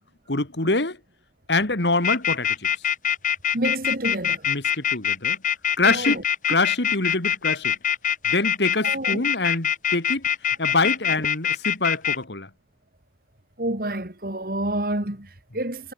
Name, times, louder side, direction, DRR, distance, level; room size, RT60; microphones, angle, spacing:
voice 1, 0.3-1.0 1.5-2.7 4.5-5.4 5.8-6.2 6.5-7.8 8.3-10.3 10.6-12.5, left 3 dB, 75° left, 2.4 m, -25 dB
sound 1, 2.0-12.2, left 9 dB, 45° left, 3.5 m, -23 dB
voice 2, 3.5-4.5 5.8-6.2 8.8-9.2 13.6-15.9, right 1 dB, 55° right, 2.6 m, -28 dB
head